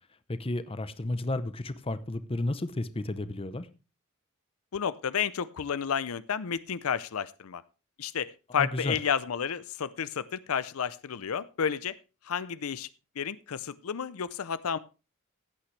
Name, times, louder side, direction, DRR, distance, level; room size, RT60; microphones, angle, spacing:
voice 1, 0.3-3.7 8.5-9.0, left 2 dB, 25° left, 0.7 m, -32 dB
voice 2, 4.7-7.6 8.0-11.9 12.3-12.9 13.2-14.8, left 7 dB, 75° left, 0.5 m, -31 dB
15.5 x 8.9 x 3.2 m
head